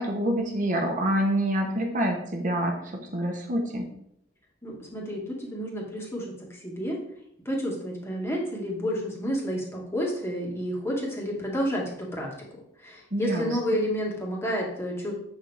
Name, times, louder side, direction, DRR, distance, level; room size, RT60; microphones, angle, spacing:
voice 1, 0.0-3.9 13.1-13.6, right 1 dB, 45° right, 1 dB, 1.3 m, -27 dB
voice 2, 4.6-6.3 6.5-7.0 7.5-12.3 12.8-15.1, equal, 15° left, -2 dB, 2.1 m, -30 dB
8.7 x 6.4 x 3.6 m, 0.72 s
head